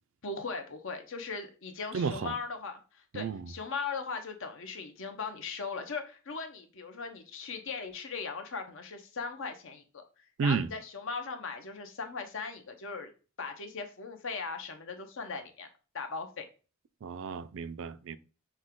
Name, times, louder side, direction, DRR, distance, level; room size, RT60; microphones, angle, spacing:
voice 1, 0.2-10.0 10.4-13.1 13.4-15.7 15.9-16.5, left 4 dB, 65° left, 0.8 m, -39 dB
voice 2, 1.9-2.3 3.1-3.5 10.4-10.7 17.0-18.2, right 5 dB, 65° right, 0.4 m, -32 dB
6.1 x 2.2 x 3.7 m
head